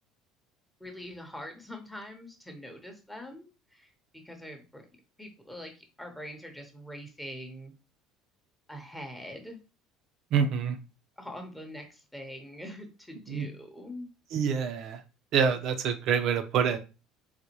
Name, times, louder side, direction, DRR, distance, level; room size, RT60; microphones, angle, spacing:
voice 1, 0.8-4.8 5.2-7.7 8.7-9.6 11.2-14.1, equal, 5° left, 0.8 m, -43 dB
voice 2, 10.3-10.8 13.3-13.5 14.3-15.0 15.3-16.8, right 7 dB, 60° right, 0.6 m, -26 dB
4.0 x 2.2 x 3.0 m
supercardioid pair, 110°, 0 cm